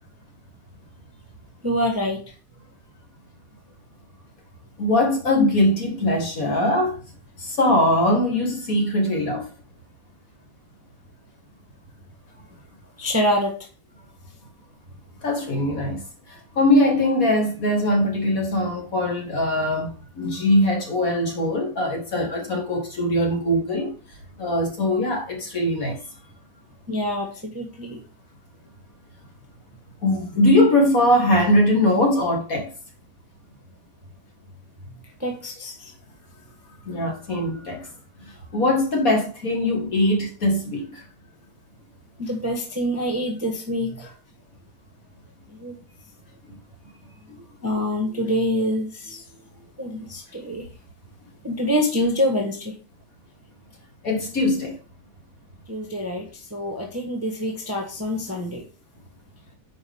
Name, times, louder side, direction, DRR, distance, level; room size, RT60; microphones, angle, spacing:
voice 1, 1.6-2.2 13.0-13.5 26.9-27.3 27.5-28.0 35.2-35.9 42.2-44.1 45.6-45.8 47.6-49.2 49.8-50.7 51.4-52.7 55.7-58.6, equal, 10° right, 1.3 m, -26 dB
voice 2, 4.8-7.0 7.4-9.5 15.2-23.9 24.4-26.0 30.0-32.7 36.8-37.9 38.2-41.0 46.5-46.6 54.0-54.8, left 1 dB, 45° left, 2.4 m, -21 dB
9.4 x 5.2 x 3.6 m
omnidirectional pair, 2.1 m